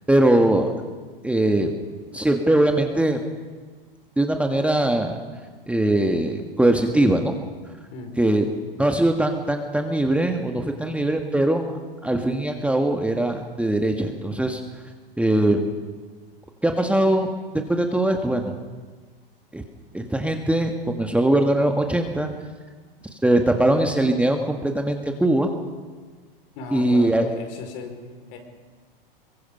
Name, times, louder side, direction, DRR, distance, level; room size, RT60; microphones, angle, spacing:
voice 1, 0.1-0.7 1.2-1.7 2.1-3.2 4.2-5.2 5.7-7.3 8.2-8.4 8.8-11.7 12.0-14.6 15.2-15.7 16.6-17.3 17.7-18.5 19.5-19.6 19.9-22.3 23.2-25.5 26.7-27.3, right 1 dB, 5° right, 4 dB, 1.5 m, -21 dB
voice 2, 26.5-28.0 28.3-28.4, left 5 dB, 55° left, 4 dB, 4.9 m, -36 dB
23.0 x 22.5 x 5.4 m, 1.4 s
hypercardioid pair, 100°, 29 cm